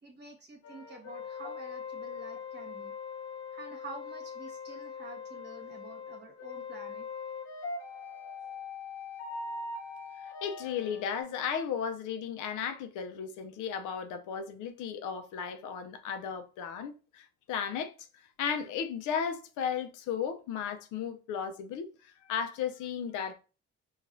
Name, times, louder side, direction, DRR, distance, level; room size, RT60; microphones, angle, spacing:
voice 1, 0.0-2.9 3.5-7.1, right 2 dB, 35° right, 1.3 m, -48 dB
sound 1, 0.6-11.2, left 5 dB, 55° left, 0.9 m, -42 dB
voice 2, 10.4-17.9 18.4-23.3, left 7 dB, 90° left, 0.6 m, -35 dB
4.7 x 2.4 x 2.6 m
cardioid pair, 90°, 30 cm